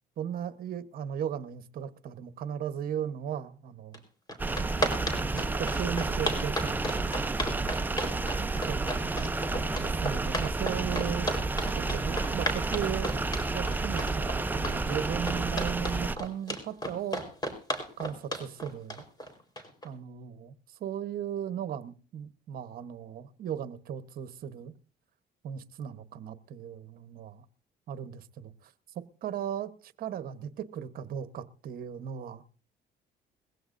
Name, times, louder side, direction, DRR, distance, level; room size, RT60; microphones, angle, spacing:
voice 1, 0.2-4.0 5.3-7.2 8.7-9.4 9.8-11.3 11.8-13.2 13.5-17.2 18.0-19.0 19.8-24.7 25.4-27.4 27.9-28.7 29.2-32.4, right 9 dB, 60° right, 1.1 m, -37 dB
sound 1, 3.9-4.0 4.3-19.9, equal, 25° left, 4.3 m, -33 dB
sound 2, 4.4-16.2, right 3 dB, 10° right, 0.7 m, -31 dB
21.0 x 16.0 x 2.6 m
cardioid pair, 110°, 17 cm